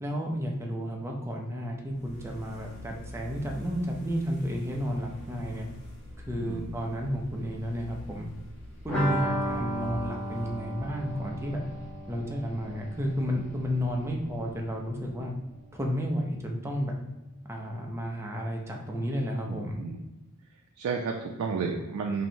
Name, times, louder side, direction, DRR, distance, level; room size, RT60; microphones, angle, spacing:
voice 1, 0.0-5.7 6.3-8.3 8.8-11.6 12.1-15.3 15.7-16.9 17.5-19.8, equal, 10° right, 0 dB, 0.4 m, -32 dB
sound 1, 1.9-15.8, left 1 dB, 35° left, 1.0 m, -46 dB
sound 2, 8.9-14.5 14.7-14.8 15.1-15.2, right 1 dB, 5° left, 0.8 m, -35 dB
voice 2, 19.4-20.0 20.8-22.3, right 5 dB, 75° right, 2 dB, 0.3 m, -32 dB
3.1 x 2.6 x 2.7 m, 1.0 s
head